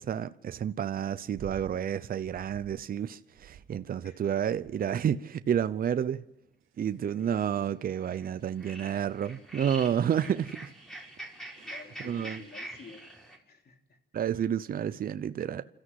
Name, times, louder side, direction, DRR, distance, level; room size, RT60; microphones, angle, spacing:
voice 1, 0.0-6.2 6.8-10.7 12.0-12.4 14.1-15.6, right 9 dB, 45° right, 0.7 m, -30 dB
sound 1, 1.3-1.8 2.2-2.8 3.3-4.0 4.5-4.9 5.6-5.9 6.6-7.0 7.9-8.0, right 9 dB, 85° right, 2.6 m, -50 dB
sound 2, 7.0-7.4 7.9-8.3 8.6-13.4, right 1 dB, 5° left, 5.4 m, -44 dB
voice 2, 11.6-13.1 13.4-14.0, left 4 dB, 50° left, 3.2 m, -51 dB
27.5 x 14.0 x 8.1 m
cardioid pair, 90°, 20 cm